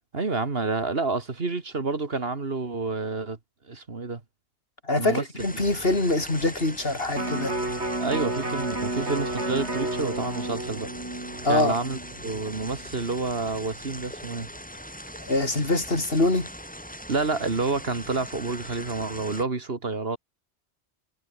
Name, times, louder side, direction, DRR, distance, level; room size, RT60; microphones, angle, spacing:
voice 1, 0.1-3.4 3.7-4.2 5.0-5.2 8.0-10.9 11.5-14.5 17.1-20.2, right 3 dB, 60° right, 2.3 m, -29 dB
voice 2, 4.8-7.6 11.4-11.7 15.3-16.5, left 2 dB, 60° left, 4.4 m, -24 dB
sound 1, 5.4-19.4, equal, 5° left, 6.4 m, -41 dB
Electric guitar, 7.1-13.4 13.8-13.9, right 1 dB, 80° right, 6.5 m, -32 dB
omnidirectional pair, 1.1 m